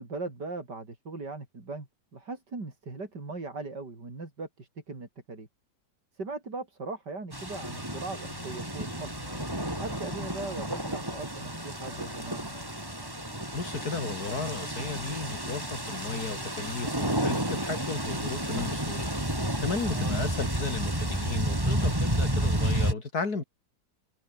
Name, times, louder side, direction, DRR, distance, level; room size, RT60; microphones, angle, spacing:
voice 1, 0.0-5.5 6.1-9.1 9.8-12.5 19.9-20.2, right 3 dB, 80° right, 5.2 m, -39 dB
sound 1, 7.3-22.9, right 1 dB, 10° right, 4.5 m, -31 dB
sound 2, 7.5-21.1, left 2 dB, 40° left, 5.2 m, -51 dB
voice 2, 13.5-19.1 19.6-23.4, left 4 dB, 60° left, 4.0 m, -34 dB
omnidirectional pair, 1.8 m